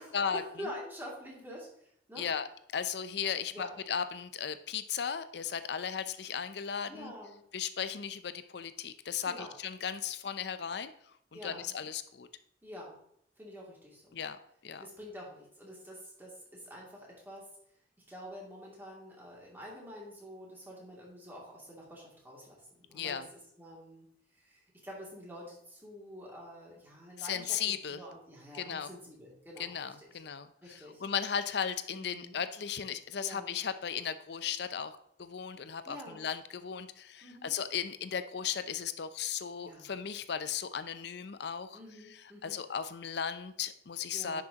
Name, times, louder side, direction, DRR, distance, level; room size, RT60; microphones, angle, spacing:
voice 1, 0.0-1.7 2.1-2.3 3.5-3.7 6.8-7.4 9.3-9.5 11.3-11.8 12.6-13.0 13.4-14.2 14.8-17.5 18.1-24.1 24.4-27.5 27.9-30.1 30.6-31.0 31.9-32.4 33.2-33.6 35.9-36.2 37.2-37.5 39.6-39.9 41.7-42.6 44.1-44.4, equal, 10° right, -4 dB, 2.6 m, -47 dB
voice 2, 2.2-2.5 2.7-7.1 7.5-10.9 11.3-12.3 14.1-14.4 14.6-14.9 22.9-23.3 27.2-28.0 28.5-28.9 29.6-41.8 42.4-44.4, left 7 dB, 65° left, 12 dB, 0.6 m, -36 dB
10.5 x 6.1 x 2.9 m, 0.71 s
head